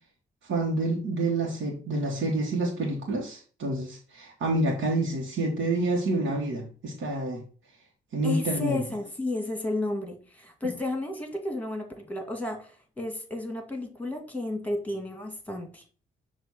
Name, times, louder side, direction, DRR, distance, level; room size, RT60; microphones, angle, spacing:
voice 1, 0.4-7.4 8.1-8.8 10.6-10.7, right 2 dB, 70° right, -1 dB, 1.5 m, -28 dB
voice 2, 8.2-15.8, left 2 dB, 5° left, 4 dB, 2.0 m, -32 dB
6.1 x 2.7 x 5.6 m, 0.39 s
supercardioid pair, 50°, 21 cm